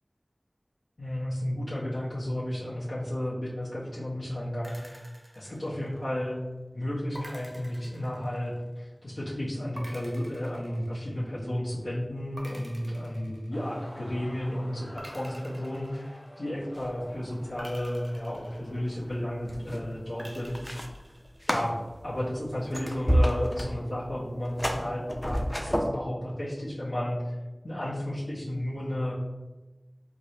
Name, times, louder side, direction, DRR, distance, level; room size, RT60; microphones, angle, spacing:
voice 1, 1.0-5.0 5.3-6.4 6.7-20.8 21.5-21.7 22.0-27.3 27.6-29.1, left 1 dB, 85° left, -9 dB, 0.7 m, -33 dB
sound 1, 4.6-6.2 7.1-8.8 9.8-11.5 12.4-14.0 15.0-16.7 17.6-19.3 20.2-21.6, right 1 dB, 70° right, 0.7 m, -48 dB
sound 2, 13.5-19.1, equal, 35° left, 1.0 m, -50 dB
sound 3, 16.7-17.2 17.4-17.8 18.6-25.9, equal, 10° left, 0.4 m, -30 dB
4.7 x 2.0 x 2.7 m, 1.1 s
wide cardioid pair, 50°, 0 cm